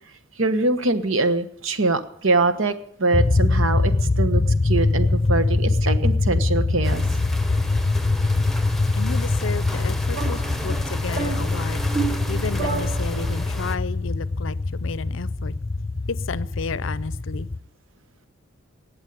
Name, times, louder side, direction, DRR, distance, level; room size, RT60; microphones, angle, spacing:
voice 1, 0.4-2.7 3.0-7.0 13.1-13.2, right 3 dB, 75° right, 11 dB, 1.2 m, -23 dB
sound 1, 3.1-17.6, left 2 dB, 30° left, 0.6 m, -23 dB
sound 2, 6.8-13.8, left 1 dB, ahead, 1.0 m, -34 dB
voice 2, 9.0-11.8 12.3-15.5 16.1-17.5, left 5 dB, 70° left, 17 dB, 0.6 m, -32 dB
sound 3, 10.1-13.6, right 5 dB, 45° right, 2.3 m, -32 dB
18.0 x 7.3 x 9.3 m, 0.71 s
head